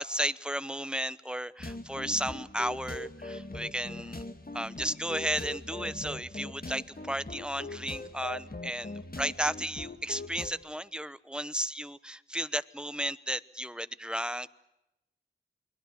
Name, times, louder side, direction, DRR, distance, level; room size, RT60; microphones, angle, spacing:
voice 1, 0.0-4.3 4.5-6.8 7.1-14.5, equal, 5° right, 14 dB, 0.9 m, -34 dB
sound 1, 1.6-10.5, left 2 dB, 45° left, 2.1 m, -41 dB
29.0 x 21.5 x 7.2 m, 0.92 s
wide cardioid pair, 50°, 20 cm